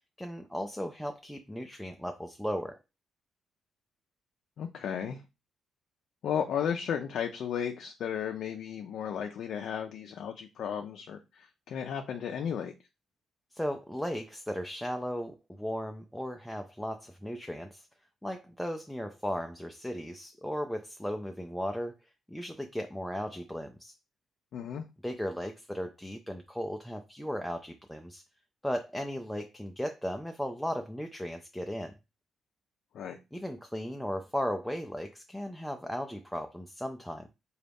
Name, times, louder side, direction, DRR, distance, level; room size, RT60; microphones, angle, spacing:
voice 1, 0.2-2.8 13.5-17.9 18.2-22.0 22.3-23.9 25.0-28.2 28.6-32.0 33.3-37.3, equal, 5° left, 0.4 m, -36 dB
voice 2, 4.6-5.2 6.2-12.7 24.5-24.9 32.9-33.2, left 8 dB, 70° left, 0.4 m, -34 dB
3.9 x 2.3 x 3.4 m
cardioid pair, 90°, 0 cm